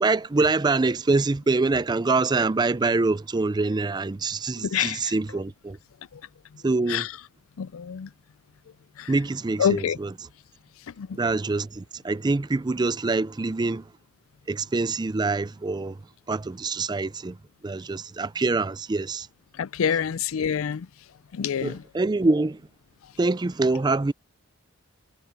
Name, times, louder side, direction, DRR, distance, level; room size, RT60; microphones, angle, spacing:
voice 1, 0.0-5.8 6.6-7.1 9.1-10.1 11.2-13.8 14.5-16.0 16.3-17.4 17.6-19.3 21.6-22.6 23.2-24.1, right 3 dB, 20° right, 0.4 m, -25 dB
voice 2, 4.6-5.1 6.1-6.2 6.9-7.1 7.6-8.1 9.0-9.1 9.6-10.0 11.0-11.2 19.6-20.9 21.3-21.8, left 8 dB, 85° left, 0.4 m, -26 dB
head